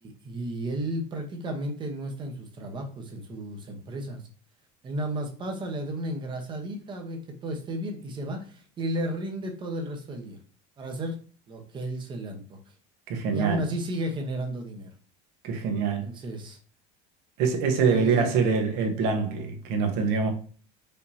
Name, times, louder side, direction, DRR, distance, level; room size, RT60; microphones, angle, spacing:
voice 1, 0.0-4.2 4.8-10.4 10.8-11.2 11.5-12.6 13.3-14.9 16.0-16.6 17.8-18.4, right 1 dB, 25° right, 1.0 m, -33 dB
voice 2, 13.1-13.6 15.4-16.1 17.4-20.3, right 5 dB, 65° right, 1.1 m, -25 dB
5.2 x 2.8 x 2.8 m
cardioid pair, 140°, 18 cm